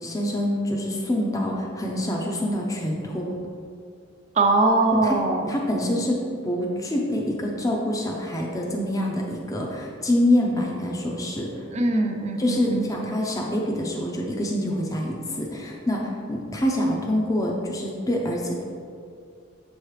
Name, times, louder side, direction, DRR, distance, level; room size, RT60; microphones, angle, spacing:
voice 1, 0.0-3.4 4.9-5.2 5.5-11.7 12.4-18.6, left 1 dB, 15° left, -1 dB, 0.5 m, -26 dB
voice 2, 4.4-5.5 11.7-12.9, right 2 dB, 30° right, 3 dB, 0.5 m, -22 dB
7.3 x 3.1 x 4.8 m, 2.3 s
head